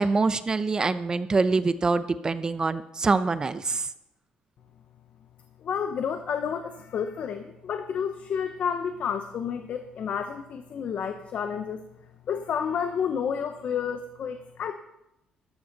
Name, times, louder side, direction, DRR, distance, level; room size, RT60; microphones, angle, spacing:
voice 1, 0.0-3.9, right 3 dB, 25° right, 13 dB, 0.7 m, -25 dB
voice 2, 5.6-11.8 12.3-14.7, left 7 dB, 55° left, 8 dB, 0.9 m, -30 dB
13.0 x 12.0 x 4.1 m, 0.88 s
cardioid pair, 110°, 3 cm